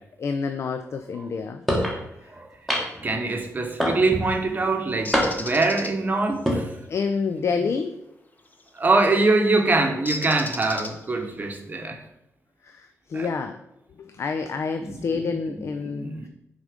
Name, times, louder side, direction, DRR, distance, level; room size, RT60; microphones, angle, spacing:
voice 1, 0.2-1.6 6.9-8.0 12.6-13.6 14.0-16.3, left 5 dB, 55° left, 7 dB, 0.4 m, -28 dB
sound 1, 1.7-2.0 2.7-3.1 3.8-4.3 5.1-5.6 6.3-6.6, equal, ahead, 1.3 m, -24 dB
voice 2, 3.0-6.7 8.7-12.0 13.1-13.3 14.8-16.3, right 3 dB, 35° right, 4 dB, 0.9 m, -24 dB
Bird, 5.1-5.9 8.5-8.8 10.1-11.3, left 2 dB, 30° left, 0.8 m, -34 dB
6.3 x 3.8 x 5.0 m, 0.87 s
cardioid pair, 100°, 5 cm